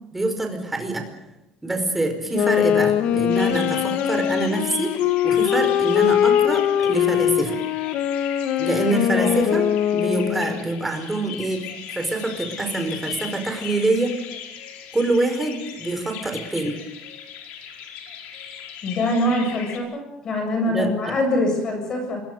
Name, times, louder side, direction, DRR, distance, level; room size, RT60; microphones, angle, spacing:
voice 1, 0.1-1.1 1.6-4.9 5.2-7.6 8.6-14.1 14.9-16.7 20.7-21.1, right 2 dB, 10° right, 5 dB, 4.9 m, -25 dB
Wind instrument woodwind instrument, 2.3-10.6, left 10 dB, 60° left, 1.8 m, -21 dB
sound 1, 3.3-19.8, left 8 dB, 80° left, 5.0 m, -38 dB
voice 2, 18.8-22.2, left 1 dB, 30° left, 3 dB, 7.6 m, -24 dB
26.5 x 22.5 x 6.8 m, 0.95 s
cardioid pair, 170°, 2 cm